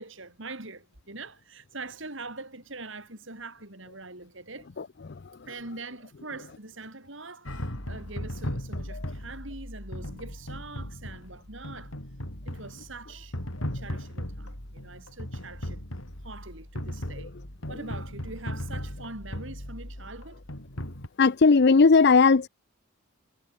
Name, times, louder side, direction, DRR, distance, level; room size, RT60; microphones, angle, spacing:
voice 1, 0.0-4.7 5.4-11.9 12.4-13.4 13.6-15.9 16.2-17.3 17.7-20.4, right 3 dB, 60° right, 4.7 m, -43 dB
voice 2, 4.8-5.3 8.9-9.0 17.7-17.8 21.2-22.5, left 4 dB, 55° left, 0.5 m, -19 dB
sound 1, 7.5-21.1, equal, 75° left, 5.9 m, -37 dB
head